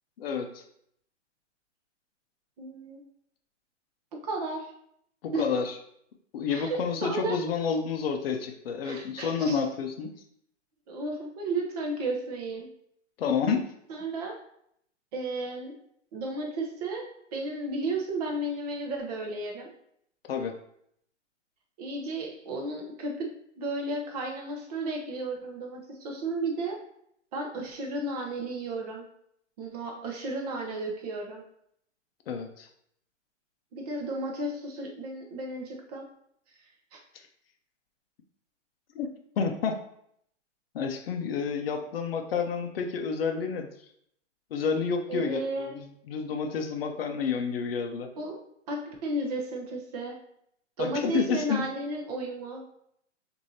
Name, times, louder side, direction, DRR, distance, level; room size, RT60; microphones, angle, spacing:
voice 1, 0.2-0.6 5.2-5.7 6.3-10.1 13.2-13.7 20.3-20.5 32.3-32.7 38.9-39.8 40.7-43.7 44.5-45.4 45.8-48.1 50.8-51.7, left 6 dB, 50° left, 4 dB, 0.6 m, -29 dB
voice 2, 2.6-3.0 4.2-4.7 5.3-5.5 6.5-7.4 8.8-9.6 10.9-12.7 13.9-14.4 15.1-15.8 16.1-19.7 21.8-23.3 23.6-26.8 27.3-29.1 29.6-31.4 33.7-36.1 36.9-37.0 45.1-45.8 48.2-48.4 48.7-50.2 50.8-52.7, right 2 dB, 30° right, 1 dB, 0.7 m, -33 dB
6.2 x 2.7 x 2.7 m, 0.71 s
hypercardioid pair, 150°, 37 cm